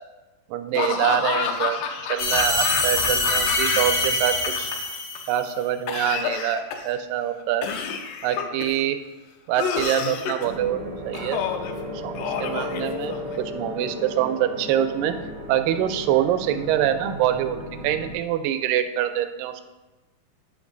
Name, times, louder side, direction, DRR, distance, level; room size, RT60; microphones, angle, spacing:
voice 1, 0.5-1.8 2.1-4.7 5.3-7.7 8.2-9.0 9.5-11.4 12.0-15.1 15.5-17.6 17.8-19.5, right 11 dB, 80° right, 10 dB, 2.2 m, -25 dB
Laughter / Cough, 0.7-4.1 4.3-5.2 5.9-7.0 7.6-8.8 9.6-10.5 11.1-11.7 12.2-13.4, left 7 dB, 80° left, 2.4 m, -28 dB
sound 1, 2.2-5.5, left 2 dB, 50° left, 1.5 m, -24 dB
sound 2, 10.4-18.1, left 1 dB, 55° right, 1.3 m, -35 dB
9.1 x 6.0 x 3.9 m, 1.1 s
omnidirectional pair, 4.0 m